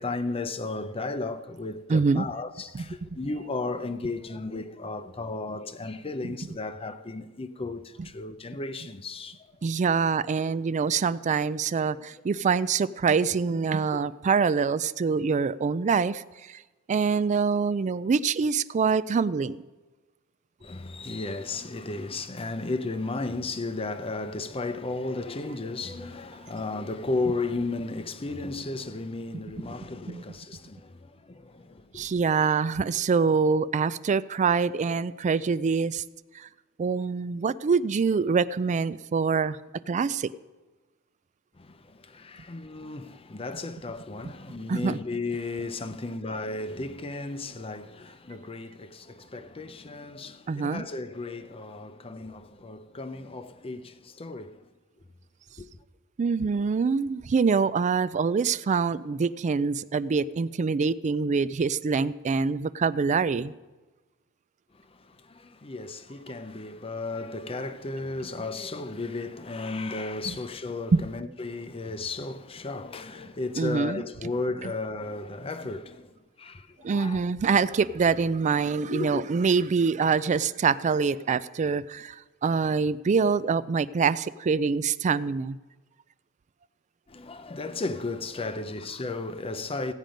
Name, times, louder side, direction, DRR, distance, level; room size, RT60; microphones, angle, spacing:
voice 1, 0.0-9.5 20.6-32.1 41.6-54.6 55.6-55.7 64.7-77.2 78.9-79.2 87.1-89.9, left 3 dB, 25° left, 0.6 m, -34 dB
voice 2, 1.9-2.3 2.7-3.1 6.2-6.3 9.6-16.6 16.9-19.6 29.3-29.4 30.1-30.2 31.9-36.0 36.3-36.5 36.8-39.6 39.9-40.3 44.7-45.0 50.5-50.8 56.2-63.5 70.3-70.4 70.9-71.1 73.6-74.0 76.8-85.6, right 5 dB, 35° right, 0.3 m, -25 dB
16.0 x 9.0 x 5.2 m
head